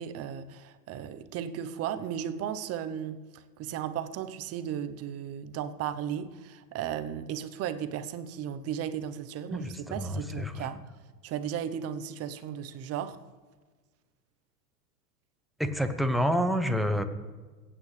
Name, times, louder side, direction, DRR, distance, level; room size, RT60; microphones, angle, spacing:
voice 1, 0.0-10.8 11.2-13.2, right 9 dB, 30° right, 11 dB, 0.8 m, -35 dB
voice 2, 9.5-10.7 15.6-17.0, equal, ahead, 9 dB, 0.7 m, -28 dB
24.0 x 9.0 x 3.3 m, 1.4 s
hypercardioid pair, 115°, 48 cm